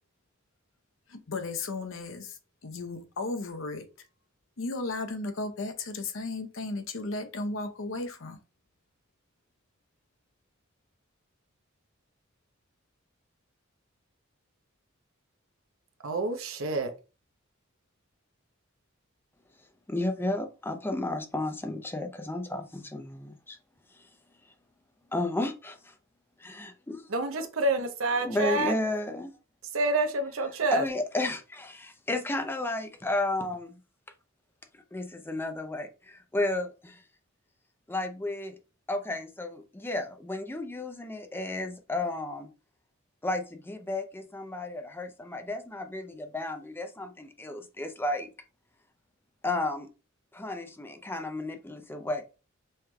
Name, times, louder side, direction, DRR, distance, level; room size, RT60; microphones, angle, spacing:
voice 1, 1.1-3.8 4.6-8.4, left 3 dB, 65° left, 0.7 m, -35 dB
voice 2, 16.0-16.9 27.1-28.7 29.7-30.8, right 2 dB, 75° right, 0.7 m, -28 dB
voice 3, 19.9-23.6 23.9-24.1 25.1-25.9 26.4-27.1 28.2-29.3 30.7-33.8 34.9-37.0 37.9-38.6 38.9-42.5 43.2-48.3 49.4-49.9 50.3-52.2, left 2 dB, 10° left, 0.5 m, -33 dB
5.6 x 3.2 x 2.2 m
head